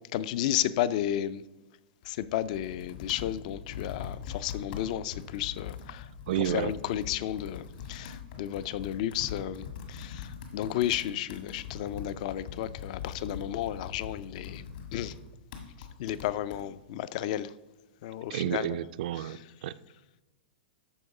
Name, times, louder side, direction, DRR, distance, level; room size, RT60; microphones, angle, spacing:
voice 1, 0.1-1.4 2.1-6.0 6.4-14.6 14.9-15.1 16.0-17.5 18.0-18.8 19.2-19.4, left 12 dB, 45° left, 0.4 m, -33 dB
Computer keyboard, 2.0-16.6, left 7 dB, 60° left, 1.8 m, -42 dB
voice 2, 6.3-6.7 18.3-19.7, right 11 dB, 55° right, 0.4 m, -31 dB
13.5 x 4.6 x 4.8 m
supercardioid pair, 160°, 6 cm